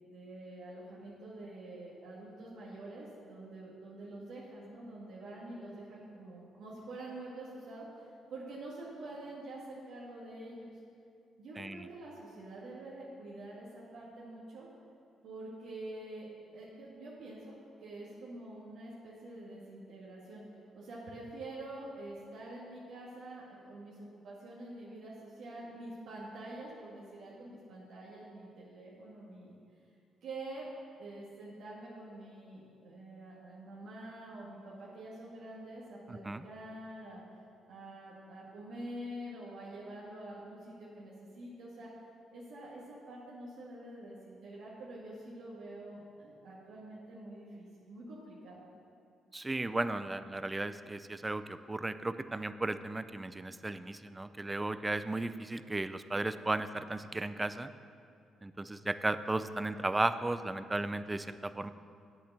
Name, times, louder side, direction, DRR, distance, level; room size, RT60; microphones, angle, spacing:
voice 1, 0.0-10.7 11.4-14.7 15.2-20.4 20.7-29.6 30.2-30.7 31.0-37.2 37.6-41.9 42.3-48.6, right 1 dB, 75° right, -7 dB, 1.8 m, -46 dB
voice 2, 11.6-11.9 36.1-36.5 49.3-57.7 58.4-61.7, right 2 dB, 15° right, 12 dB, 0.4 m, -35 dB
8.7 x 6.8 x 6.7 m, 2.4 s
cardioid pair, 90°, 0 cm